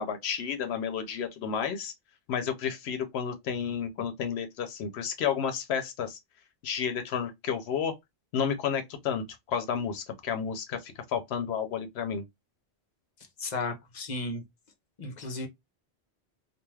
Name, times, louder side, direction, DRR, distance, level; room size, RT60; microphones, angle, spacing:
voice 1, 0.0-1.9 2.3-6.2 6.6-7.9 8.3-12.2, left 7 dB, 85° left, 0.8 m, -31 dB
voice 2, 13.4-14.4 15.0-15.5, left 3 dB, 50° left, 0.7 m, -34 dB
2.4 x 2.3 x 3.1 m
omnidirectional pair, 1.1 m